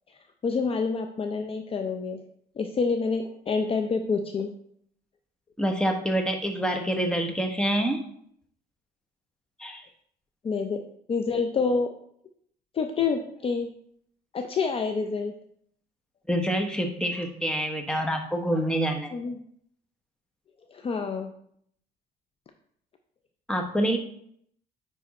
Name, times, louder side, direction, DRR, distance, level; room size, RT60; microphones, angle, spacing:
voice 1, 0.4-2.2 2.6-4.5 10.4-10.8 11.1-11.9 12.7-13.7 14.3-15.3 19.1-19.4 20.7-21.3, left 4 dB, 35° left, 5 dB, 0.6 m, -27 dB
voice 2, 5.6-8.0 9.6-9.9 16.3-19.2 23.5-24.0, equal, 5° left, 3 dB, 1.1 m, -26 dB
9.4 x 3.5 x 4.2 m, 0.66 s
cardioid pair, 110°, 17 cm